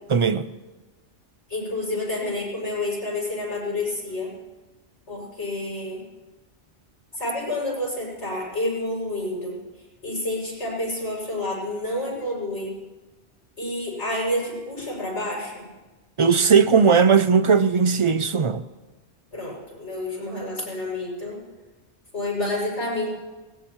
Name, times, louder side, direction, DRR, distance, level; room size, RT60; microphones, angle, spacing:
voice 1, 0.1-0.5 16.2-18.6, right 6 dB, 45° right, 0.4 m, -18 dB
voice 2, 1.5-4.3 5.1-6.1 7.1-9.6 10.0-12.8 13.6-15.7 19.3-21.4 22.1-23.1, left 1 dB, 90° left, 7.5 m, -29 dB
22.5 x 19.0 x 3.2 m
omnidirectional pair, 1.1 m